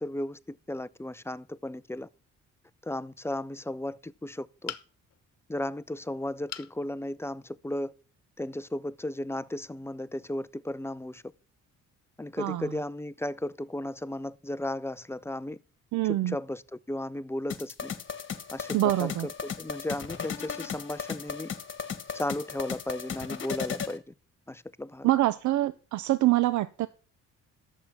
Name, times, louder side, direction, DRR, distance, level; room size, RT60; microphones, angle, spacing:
voice 1, 0.0-2.1 2.8-4.7 5.5-7.9 8.4-11.2 12.2-15.6 16.1-17.9 18.5-21.5 22.1-24.1 24.5-25.1, left 1 dB, 10° left, 0.4 m, -35 dB
sound 1, 4.7-5.2 6.5-6.8 7.3-7.4 7.8-7.9, left 11 dB, 55° left, 1.1 m, -39 dB
voice 2, 12.4-12.7 15.9-16.4 18.7-19.3 25.0-26.9, right 15 dB, 70° right, 0.6 m, -25 dB
sound 2, 17.5-24.0, left 6 dB, 40° left, 1.5 m, -36 dB
11.0 x 7.3 x 5.8 m
cardioid pair, 90°, 30 cm